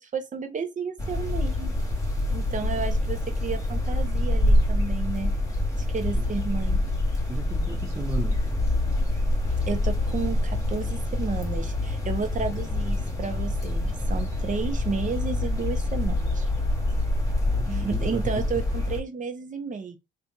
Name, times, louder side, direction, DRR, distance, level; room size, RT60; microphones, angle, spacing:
voice 1, 0.0-1.7 2.3-5.3 5.9-6.8 9.7-16.5 17.7-20.0, right 5 dB, 40° right, 0.9 m, -32 dB
sound 1, 1.0-19.0, left 1 dB, 15° left, 1.3 m, -26 dB
voice 2, 2.5-2.8 6.1-6.3 7.3-8.4 17.5-18.4, right 4 dB, 15° right, 0.5 m, -36 dB
3.3 x 2.8 x 3.8 m
cardioid pair, 90°, 20 cm